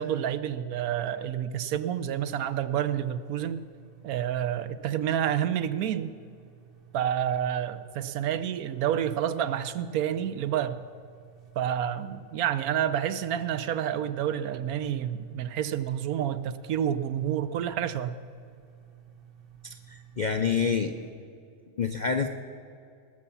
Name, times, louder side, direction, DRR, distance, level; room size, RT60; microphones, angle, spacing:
voice 1, 0.0-3.6 4.0-6.1 6.9-10.8 11.6-18.1, right 10 dB, 85° right, 12 dB, 1.1 m, -29 dB
sound 1, 1.8-21.1, right 8 dB, 45° right, 1.1 m, -54 dB
voice 2, 19.6-20.9 21.8-22.3, left 6 dB, 65° left, 6 dB, 0.4 m, -27 dB
19.0 x 7.0 x 7.1 m, 2.4 s
omnidirectional pair, 1.5 m